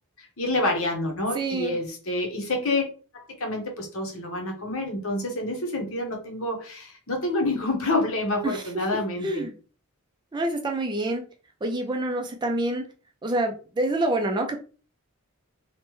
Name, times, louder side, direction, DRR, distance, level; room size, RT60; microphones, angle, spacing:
voice 1, 0.2-2.8 3.4-9.4, left 2 dB, 65° left, 2 dB, 0.9 m, -28 dB
voice 2, 1.3-1.8 8.4-8.6 9.2-9.5 10.3-11.2 11.6-12.8 13.2-14.6, right 1 dB, 20° right, 3 dB, 0.3 m, -27 dB
3.1 x 2.1 x 3.0 m, 0.37 s
head